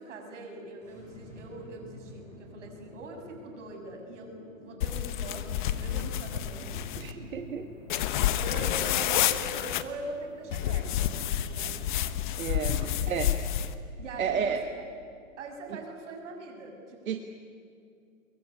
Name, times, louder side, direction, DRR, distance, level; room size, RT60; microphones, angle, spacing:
voice 1, 0.0-6.8 8.3-11.8 12.7-12.9 14.0-14.7 15.4-17.2, right 2 dB, 60° right, 3 dB, 6.8 m, -42 dB
sound 1, 0.8-16.0, left 1 dB, 5° left, 7.8 m, -51 dB
sound 2, 4.8-7.1 7.9-9.8 10.5-13.7, left 11 dB, 35° left, 1.0 m, -29 dB
voice 2, 7.0-7.7 12.4-12.8 13.1-13.3 14.2-14.6 17.1-17.2, right 7 dB, 85° right, 6 dB, 1.7 m, -31 dB
23.0 x 22.0 x 9.8 m, 2.4 s
hypercardioid pair, 160°, 40 cm